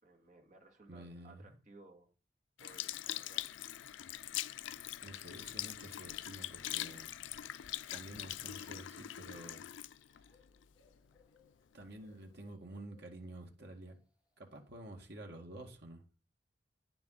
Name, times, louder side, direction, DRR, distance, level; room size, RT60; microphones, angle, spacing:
voice 1, 0.0-2.1 2.6-3.5, right 2 dB, 45° right, 2.2 m, -59 dB
voice 2, 0.9-1.6 5.0-7.3 7.9-9.6 11.7-14.0 14.4-16.0, right 1 dB, 65° right, 2.0 m, -50 dB
Sink (filling or washing) / Liquid, 2.6-11.2 11.8-11.9, left 13 dB, 85° left, 0.4 m, -43 dB
sound 1, 10.2-15.1, left 5 dB, 5° right, 4.0 m, -74 dB
9.6 x 7.1 x 4.0 m
head